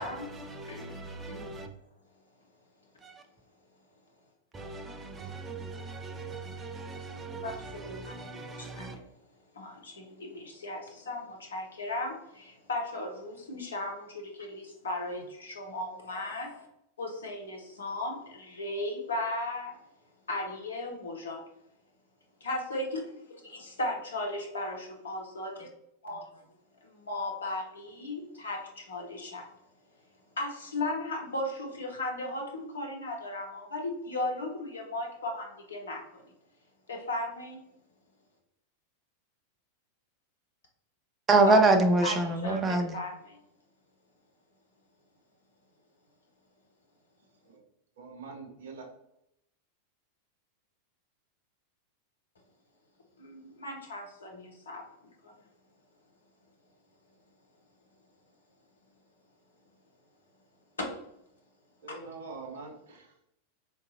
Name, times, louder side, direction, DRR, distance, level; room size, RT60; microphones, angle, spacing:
voice 1, 0.0-1.7 3.0-3.2 4.5-9.0 41.3-43.0, right 2 dB, 20° right, 0.4 m, -28 dB
voice 2, 7.4-8.3 8.6-9.0 9.5-16.7 17.0-19.8 20.3-21.4 22.4-23.0 23.4-25.7 26.0-26.4 26.8-29.5 30.4-36.3 36.9-37.6 41.4-41.6 42.0-42.2 42.4-43.1 53.2-54.9 55.2-55.3, left 2 dB, 70° left, 0.7 m, -36 dB
voice 3, 48.0-48.9 61.8-63.1, right 4 dB, 60° right, 0.7 m, -44 dB
3.7 x 2.3 x 2.5 m
figure-of-eight pair, 90°, 0 cm